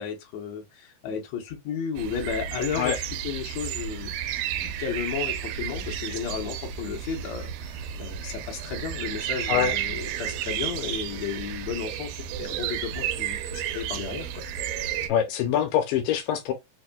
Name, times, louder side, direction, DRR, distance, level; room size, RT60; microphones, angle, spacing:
voice 1, 0.0-4.1 4.6-14.4, left 7 dB, 65° left, 1.9 m, -34 dB
sound 1, 2.0-15.1, right 10 dB, 80° right, 2.0 m, -32 dB
voice 2, 15.1-16.5, left 9 dB, 85° left, 2.3 m, -24 dB
5.2 x 2.3 x 2.2 m
omnidirectional pair, 3.9 m